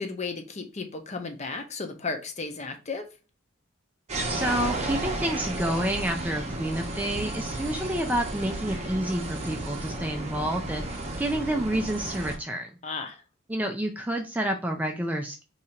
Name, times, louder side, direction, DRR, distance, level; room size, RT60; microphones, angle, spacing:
voice 1, 0.0-3.1 12.8-13.2, left 4 dB, 35° left, 5 dB, 0.6 m, -34 dB
sound 1, 4.1-12.4, right 2 dB, 30° right, 0.7 m, -33 dB
voice 2, 4.3-12.7 13.5-15.4, right 1 dB, 10° right, 3 dB, 0.3 m, -29 dB
2.8 x 2.5 x 4.3 m, 0.30 s
head